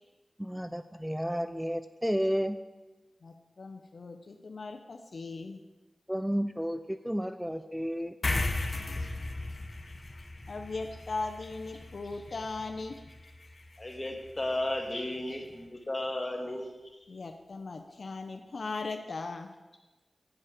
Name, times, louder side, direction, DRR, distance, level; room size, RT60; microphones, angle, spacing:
voice 1, 0.4-2.6 6.1-8.1, equal, 5° right, 10 dB, 0.4 m, -32 dB
voice 2, 3.2-5.6 8.9-9.2 10.5-13.0 17.1-19.5, left 3 dB, 70° left, 5 dB, 0.6 m, -39 dB
sound 1, 8.2-15.0, left 2 dB, 55° left, 0.9 m, -37 dB
voice 3, 13.8-17.0, left 1 dB, 35° left, 1 dB, 1.7 m, -34 dB
8.2 x 7.2 x 5.0 m, 1.1 s
cardioid pair, 45°, 0 cm